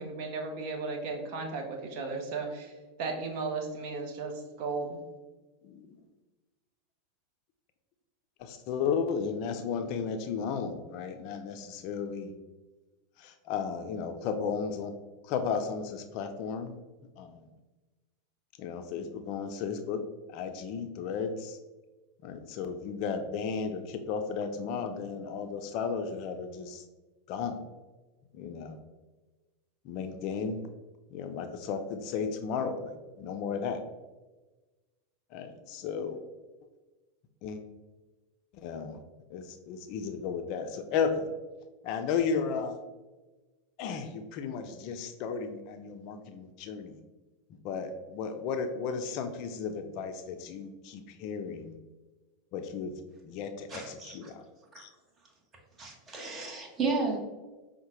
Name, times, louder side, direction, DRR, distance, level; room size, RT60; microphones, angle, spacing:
voice 1, 0.0-2.7 3.0-4.3 4.6-5.0, right 4 dB, 55° right, 3 dB, 0.7 m, -35 dB
voice 2, 5.6-6.0 8.4-12.3 13.2-14.9 15.2-16.8 17.2-17.5 18.6-21.6 22.2-26.8 27.3-27.6 28.3-28.8 29.8-30.6 31.1-33.8 35.3-36.2 37.4-37.6 38.5-39.0 39.3-41.3 41.8-42.8 43.8-47.0 47.5-51.7 52.5-52.9 53.2-54.4 54.8-54.9, left 6 dB, 50° left, 7 dB, 0.4 m, -34 dB
voice 3, 53.7-54.3 54.7-54.8 55.8-57.2, right 3 dB, 25° right, 0 dB, 1.0 m, -33 dB
5.4 x 2.1 x 2.9 m, 1.2 s
hypercardioid pair, 90°, 0 cm